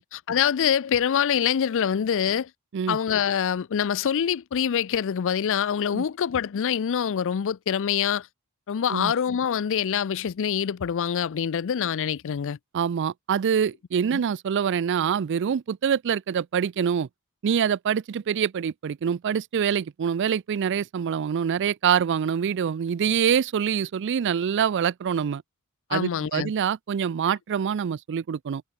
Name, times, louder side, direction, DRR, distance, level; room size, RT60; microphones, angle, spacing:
voice 1, 0.0-2.5 2.9-8.3 8.7-12.6 14.1-14.2 25.9-26.5, left 8 dB, 60° left, 0.4 m, -25 dB
voice 2, 12.7-17.1 17.4-25.4 25.9-28.6, right 7 dB, 55° right, 0.4 m, -25 dB
head